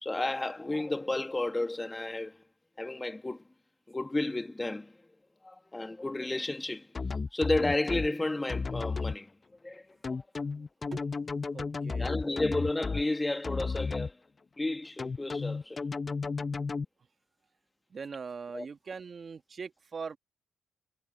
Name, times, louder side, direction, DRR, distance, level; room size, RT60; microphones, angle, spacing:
voice 1, 0.0-2.4 2.8-3.4 3.9-4.9 5.4-6.9 7.3-9.3 9.6-9.8 12.0-14.2 14.6-15.8 18.5-18.7, left 2 dB, 15° left, 1.6 m, -32 dB
sound 1, 6.9-8.1 8.5-9.1 10.0-13.0 13.4-14.1 15.0-16.8, left 4 dB, 30° left, 1.0 m, -33 dB
voice 2, 11.5-12.1 17.9-20.2, right 5 dB, 40° right, 1.5 m, -41 dB
cardioid pair, 90°, 0 cm